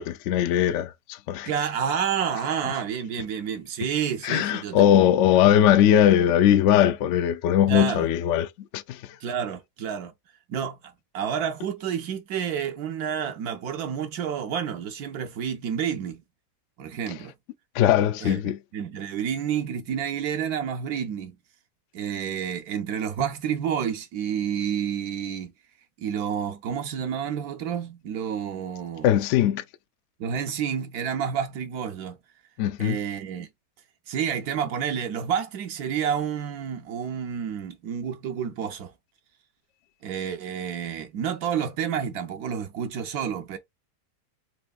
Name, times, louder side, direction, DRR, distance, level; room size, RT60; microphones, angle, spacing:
voice 1, 0.0-1.5 4.2-8.5 8.7-9.0 17.7-18.6 29.0-29.6 32.6-33.0, left 10 dB, 75° left, 0.6 m, -20 dB
voice 2, 1.4-5.1 7.7-8.1 9.2-10.1 10.5-16.2 16.8-17.3 18.2-18.4 18.7-21.4 21.9-25.5 26.0-29.2 30.2-32.2 32.8-33.5 34.1-38.9 40.0-43.6, right 8 dB, 75° right, 1.1 m, -29 dB
4.2 x 3.0 x 2.3 m
omnidirectional pair, 1.8 m